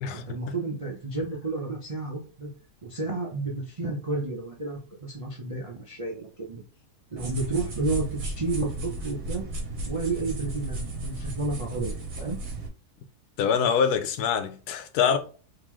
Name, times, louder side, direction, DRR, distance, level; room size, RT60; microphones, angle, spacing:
voice 1, 0.1-2.5 2.8-6.6 7.1-9.4 9.9-12.4, right 3 dB, 50° right, 0.4 m, -31 dB
sound 1, 7.2-12.7, right 2 dB, 65° right, 1.3 m, -34 dB
voice 2, 13.4-15.2, left 7 dB, 80° left, 1.1 m, -24 dB
3.7 x 2.9 x 3.0 m
omnidirectional pair, 1.6 m